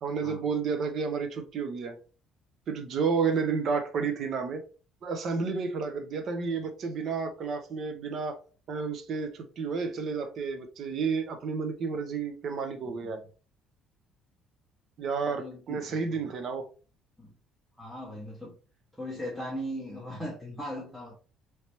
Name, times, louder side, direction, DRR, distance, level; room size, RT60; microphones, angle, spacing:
voice 1, 0.0-2.0 2.7-4.6 5.0-8.4 8.7-13.2 15.0-16.7, right 5 dB, 40° right, 0.6 m, -31 dB
voice 2, 15.3-16.3 17.2-17.3 17.8-18.5 19.0-21.1, equal, ahead, 0.8 m, -39 dB
3.2 x 3.1 x 2.8 m
cardioid pair, 180°, 0 cm